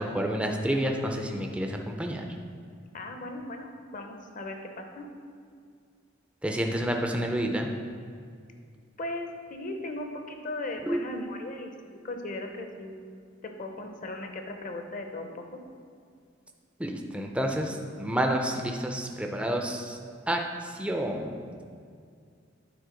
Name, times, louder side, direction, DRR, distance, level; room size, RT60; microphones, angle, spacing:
voice 1, 0.0-2.2 6.4-7.7 10.9-11.0 16.8-20.0 20.3-20.4 20.8-21.4, right 1 dB, 5° right, 2 dB, 0.4 m, -29 dB
voice 2, 2.9-5.0 9.0-13.0 13.4-15.6, left 2 dB, 40° left, 4 dB, 0.7 m, -37 dB
9.4 x 4.0 x 5.0 m, 2.2 s
head